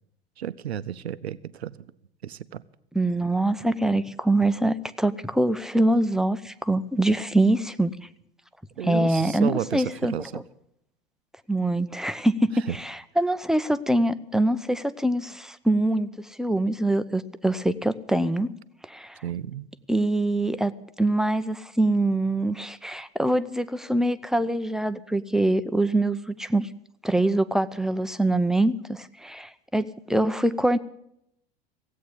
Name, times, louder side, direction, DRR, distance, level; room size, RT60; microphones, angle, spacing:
voice 1, 0.4-1.8 2.2-2.6 8.8-10.4 12.7-12.8 19.2-19.7, right 10 dB, 85° right, 16 dB, 0.7 m, -32 dB
voice 2, 2.9-7.9 8.8-10.4 11.5-18.5 18.8-19.2 19.9-20.7 21.0-26.7 27.0-30.8, right 1 dB, ahead, 12 dB, 0.6 m, -24 dB
16.5 x 8.5 x 9.8 m, 0.76 s
hypercardioid pair, 85°, 32 cm